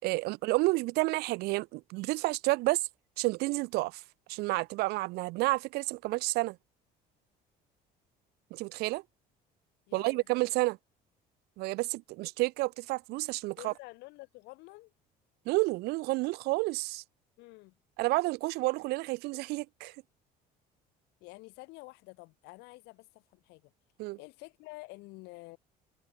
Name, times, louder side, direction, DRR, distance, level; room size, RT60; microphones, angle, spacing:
voice 1, 0.0-2.9 3.2-4.0 4.3-6.6 8.5-9.0 9.9-10.8 11.6-13.7 15.5-17.0 18.0-19.9 24.0-24.2, right 22 dB, 70° right, 1.0 m, -30 dB
voice 2, 9.9-10.5 13.6-14.9 17.4-17.8 21.2-23.7 24.2-25.6, left 23 dB, 85° left, 3.8 m, -49 dB
cardioid pair, 175°, 17 cm